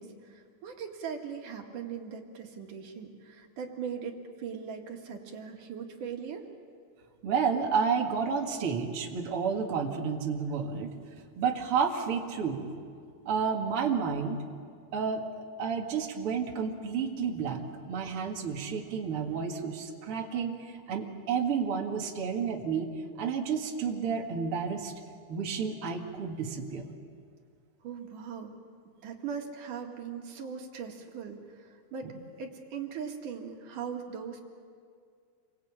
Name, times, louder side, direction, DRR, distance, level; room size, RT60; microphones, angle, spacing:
voice 1, 0.0-6.4 27.8-28.5 29.0-34.4, right 6 dB, 75° right, 2 dB, 3.5 m, -40 dB
voice 2, 7.2-10.9 11.4-12.7 13.3-14.4 14.9-15.3 15.6-20.5 20.9-22.9 23.2-24.9 25.3-26.9, right 6 dB, 45° right, 0 dB, 2.7 m, -31 dB
28.5 x 24.0 x 8.7 m, 2.2 s
omnidirectional pair, 3.7 m